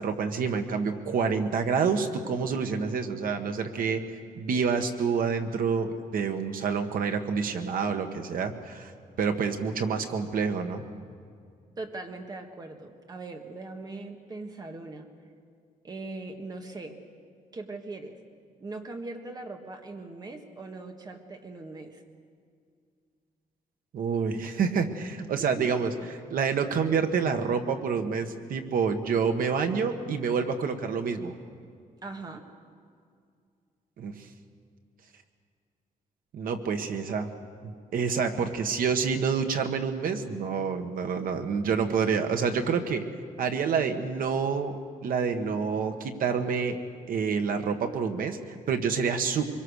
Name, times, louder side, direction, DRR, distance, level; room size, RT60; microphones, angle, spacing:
voice 1, 0.0-4.0 4.3-8.9 9.2-10.8 23.9-25.9 26.3-31.3 34.0-34.2 36.3-37.3 37.6-43.0 43.4-46.8 47.1-49.4, right 5 dB, 80° right, 6 dB, 1.6 m, -28 dB
voice 2, 11.8-15.1 15.8-17.0 17.5-18.2 18.6-22.0 25.4-25.7 32.0-32.4, right 2 dB, 25° right, 4 dB, 1.8 m, -40 dB
24.5 x 22.5 x 6.5 m, 2.2 s
wide cardioid pair, 175°, 15 cm